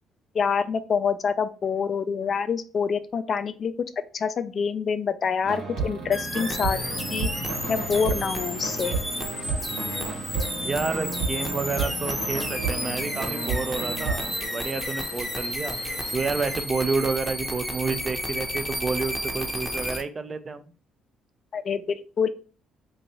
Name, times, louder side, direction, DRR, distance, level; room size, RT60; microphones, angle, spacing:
voice 1, 0.3-3.7 4.1-6.8 7.1-7.3 7.7-9.0 21.5-22.3, left 6 dB, 45° left, 11 dB, 0.4 m, -26 dB
sound 1, 5.4-14.3, right 4 dB, 75° right, 1.1 m, -32 dB
sound 2, 6.1-20.0, equal, ahead, 0.8 m, -32 dB
sound 3, 6.7-16.7, left 5 dB, 75° left, 0.7 m, -41 dB
voice 2, 10.6-15.8 16.1-20.6, right 4 dB, 35° right, 10 dB, 0.5 m, -29 dB
3.1 x 2.5 x 4.0 m, 0.38 s
supercardioid pair, 80°, 0 cm